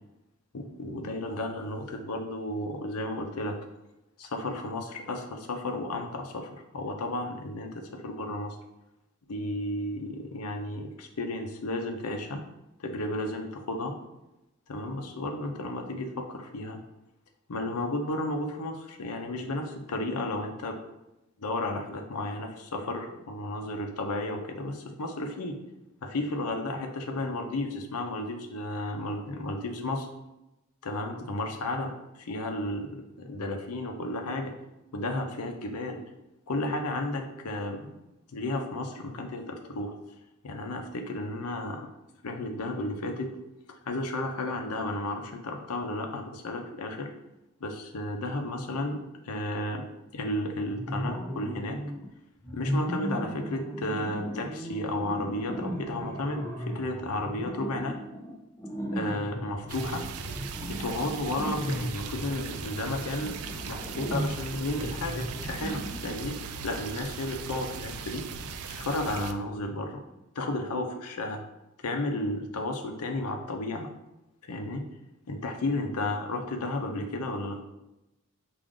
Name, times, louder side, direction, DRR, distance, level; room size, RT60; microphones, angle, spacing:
voice 1, 0.5-3.6 4.2-8.6 9.3-12.4 12.8-14.0 14.7-16.8 17.5-20.8 21.4-25.6 26.0-30.1 30.8-34.5 34.9-36.0 36.5-38.0 38.3-40.0 40.4-41.9 42.2-43.3 43.9-47.1 47.6-49.0 49.3-49.8 50.1-51.8 52.5-58.0 58.9-60.1 60.7-66.4 66.6-68.2 68.7-70.0 70.4-71.4 71.8-73.9 74.5-74.8 75.3-77.6, left 1 dB, 90° left, 4 dB, 0.6 m, -33 dB
sound 1, 50.7-52.1 52.4-66.3, equal, 15° left, 0.5 m, -36 dB
sound 2, 59.7-69.3, right 5 dB, 85° right, 0.4 m, -39 dB
4.9 x 2.5 x 3.6 m, 0.94 s
head